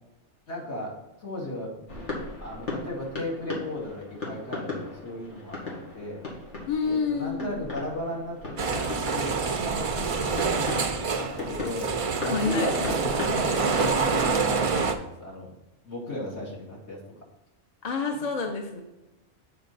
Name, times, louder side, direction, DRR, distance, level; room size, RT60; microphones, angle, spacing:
voice 1, 0.5-2.0 2.4-6.2 6.8-10.4 11.2-11.9 12.2-15.5 15.8-17.0, left 1 dB, 70° left, -5 dB, 2.6 m, -35 dB
sound 1, 1.9-14.6, left 2 dB, 85° left, 2.1 m, -38 dB
voice 2, 6.7-7.6 12.3-12.7 17.8-18.8, left 5 dB, 40° left, 3 dB, 0.8 m, -28 dB
sound 2, 8.6-14.9, right 4 dB, 45° right, 0.5 m, -26 dB
8.0 x 4.5 x 4.1 m, 1.0 s
omnidirectional pair, 1.2 m